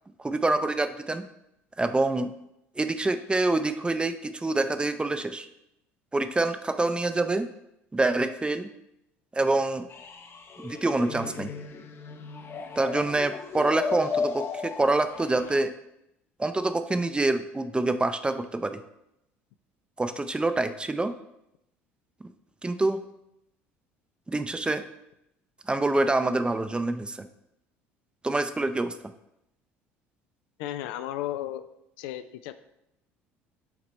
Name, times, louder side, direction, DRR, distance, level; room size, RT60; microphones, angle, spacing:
voice 1, 0.2-1.2 1.8-2.3 2.8-5.5 6.1-7.5 7.9-8.7 9.3-9.8 10.6-11.5 12.8-15.7 16.4-18.8 20.0-21.1 22.6-23.0 24.3-24.8 25.7-27.3 28.2-29.0, right 2 dB, 15° right, 10 dB, 0.5 m, -26 dB
sound 1, 9.9-15.6, left 5 dB, 40° left, 0.7 m, -35 dB
voice 2, 30.6-31.6 32.0-32.5, left 13 dB, 70° left, 11 dB, 0.4 m, -34 dB
5.9 x 4.0 x 4.4 m, 0.83 s
hypercardioid pair, 65°, 7 cm